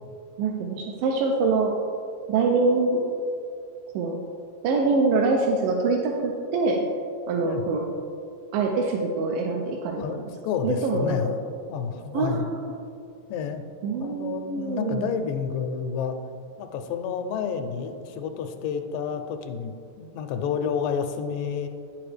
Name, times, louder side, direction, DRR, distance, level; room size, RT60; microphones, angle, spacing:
voice 1, 0.4-1.7 2.3-3.0 3.9-4.2 4.6-6.8 7.3-7.9 8.5-10.2 10.6-11.3 12.1-12.7 13.8-15.1, right 3 dB, 90° right, 1 dB, 2.3 m, -24 dB
voice 2, 10.0-11.3 11.7-12.5 13.3-13.6 14.0-16.2 16.6-21.7, left 6 dB, 90° left, 7 dB, 2.3 m, -30 dB
9.4 x 7.2 x 3.3 m, 2.4 s
omnidirectional pair, 3.9 m